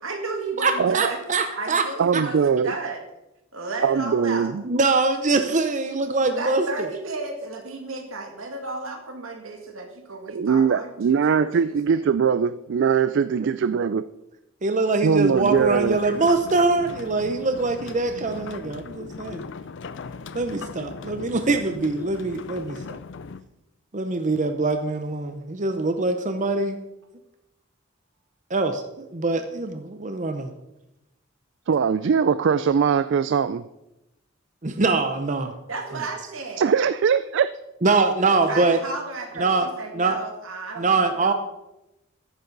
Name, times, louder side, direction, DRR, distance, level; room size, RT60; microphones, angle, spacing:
voice 1, 0.0-1.2 1.5-3.0 3.5-4.5 6.4-12.0 35.7-36.7 38.3-41.3, right 3 dB, 85° right, 3 dB, 2.3 m, -33 dB
voice 2, 0.6-1.9 2.1-2.2 4.6-6.6 13.4-13.5 14.6-19.4 20.3-22.8 23.9-26.8 28.5-30.5 34.6-35.5 37.8-38.8 39.4-39.7 39.9-40.2 40.8-41.3, right 3 dB, 40° right, 7 dB, 0.8 m, -23 dB
voice 3, 2.0-2.7 3.8-4.6 10.3-14.0 15.0-16.0 31.7-33.6 36.6-37.5, right 6 dB, 60° right, 14 dB, 0.4 m, -21 dB
sound 1, 15.3-23.4, left 4 dB, 65° left, 0.5 m, -38 dB
14.0 x 10.5 x 4.0 m, 0.91 s
head